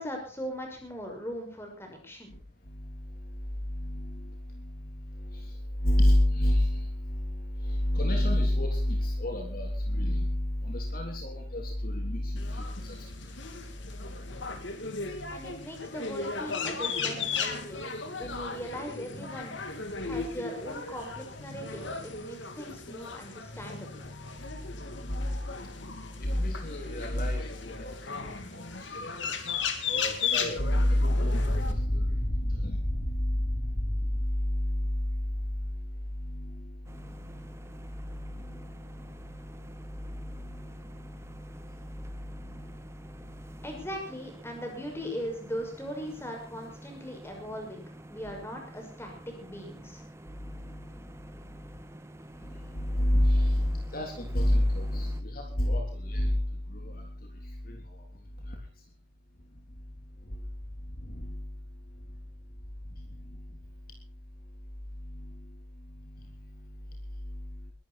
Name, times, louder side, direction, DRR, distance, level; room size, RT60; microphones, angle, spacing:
voice 1, 0.0-2.3 15.3-17.9 18.2-19.5 20.0-24.0 43.6-47.8 48.1-50.0, equal, 10° left, 2 dB, 6.1 m, -39 dB
voice 2, 2.7-13.3 14.1-14.6 15.0-15.3 24.7-25.4 26.2-28.6 29.0-29.6 29.8-35.8 36.1-37.5 38.1-39.5 40.2-40.8 41.0-41.5 42.2-42.8 43.1-43.5 50.5-50.9 51.3-51.8 52.4-57.2 57.4-58.0 58.5-58.6 60.3-60.4 61.0-61.6 63.0-63.5 65.0-65.6 65.9-66.9 67.3-67.6, left 1 dB, 45° left, 1 dB, 3.6 m, -30 dB
sound 1, 12.4-31.7, left 5 dB, 70° left, 2.8 m, -36 dB
sound 2, 36.8-55.2, right 1 dB, 15° right, 1.5 m, -48 dB
21.5 x 13.0 x 4.4 m, 0.42 s
head